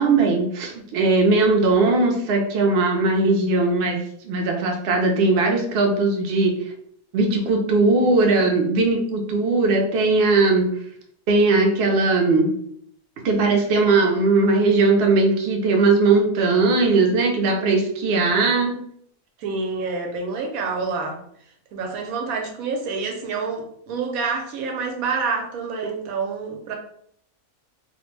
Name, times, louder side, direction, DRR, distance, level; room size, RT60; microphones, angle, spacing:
voice 1, 0.0-6.6 7.1-10.7 11.3-12.6 13.2-18.8, right 3 dB, 60° right, 1 dB, 0.7 m, -19 dB
voice 2, 19.4-21.2 21.7-26.7, right 4 dB, 90° right, 2 dB, 1.0 m, -27 dB
2.4 x 2.1 x 3.1 m, 0.67 s
omnidirectional pair, 1.4 m